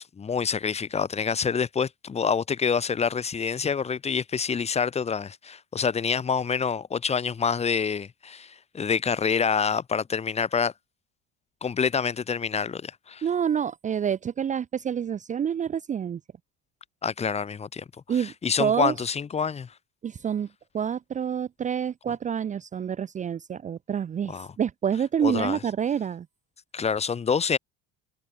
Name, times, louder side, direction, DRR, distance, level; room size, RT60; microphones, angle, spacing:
voice 1, 0.0-10.7 11.6-13.2 17.0-17.9 18.2-19.7 24.3-24.5 25.2-25.6 26.7-27.6, left 6 dB, 20° left, 1.8 m, -27 dB
voice 2, 13.2-16.2 18.1-18.3 18.6-18.9 20.0-20.5 20.7-26.3, right 8 dB, 25° right, 0.9 m, -27 dB
cardioid pair, 165°, 32 cm